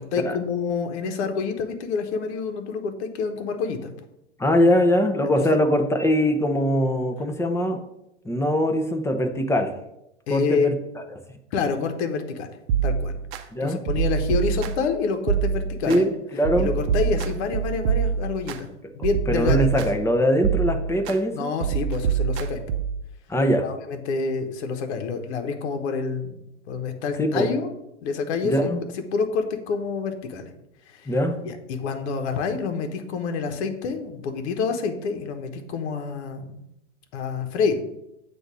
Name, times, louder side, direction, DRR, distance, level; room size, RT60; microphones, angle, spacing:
voice 1, 0.0-3.9 5.5-5.6 10.3-10.7 11.5-12.5 12.8-13.1 13.4-16.1 16.6-19.7 21.3-22.6 23.6-26.4 26.7-27.7 28.0-28.7 29.1-30.5 30.9-31.1 31.4-36.6 37.1-37.8, left 5 dB, 65° left, 6 dB, 1.1 m, -27 dB
voice 2, 4.4-7.8 8.2-9.7 10.3-10.7 13.5-13.8 15.9-16.7 19.3-21.5 23.3-23.6 27.2-27.5 28.4-28.8 31.1-31.4, equal, 5° left, 4 dB, 0.7 m, -22 dB
sound 1, 12.7-13.4 13.9-14.9 15.3-16.0 16.4-18.6 19.0-20.1 20.4-21.2 21.6-23.0, right 7 dB, 60° right, 0.7 m, -25 dB
8.1 x 2.7 x 6.1 m, 0.84 s
hypercardioid pair, 115°, 36 cm